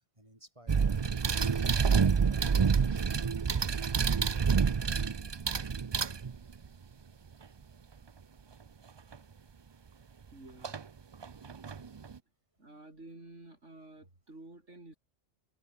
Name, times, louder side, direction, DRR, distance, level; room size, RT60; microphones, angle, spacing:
voice 1, 0.1-3.2 11.6-11.9, right 1 dB, 25° right, 6.6 m, -59 dB
sound 1, 0.7-6.7 9.1-9.2 10.6-10.8 11.2-12.2, right 6 dB, 45° right, 0.3 m, -28 dB
voice 2, 10.3-10.8 12.6-15.0, right 2 dB, 80° right, 5.9 m, -51 dB
omnidirectional pair, 1.2 m